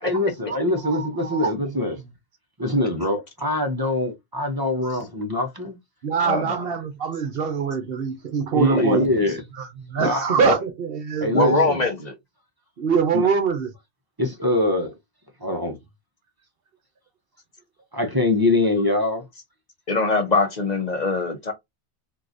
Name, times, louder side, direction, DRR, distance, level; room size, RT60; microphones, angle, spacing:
voice 1, 0.0-2.0 2.6-5.8 8.5-9.4 10.0-10.4 11.2-11.8 13.1-13.3 14.2-14.9 15.4-15.8 17.9-19.2, left 2 dB, 25° right, 0.7 m, -23 dB
voice 2, 0.8-1.5 6.0-9.1 9.6-11.7 12.8-13.7, right 6 dB, 60° right, 0.9 m, -24 dB
voice 3, 6.3-6.7 8.9-9.0 10.4-10.6 11.3-12.1 19.9-21.5, left 3 dB, 45° left, 0.8 m, -23 dB
3.8 x 2.6 x 2.5 m
omnidirectional pair, 1.1 m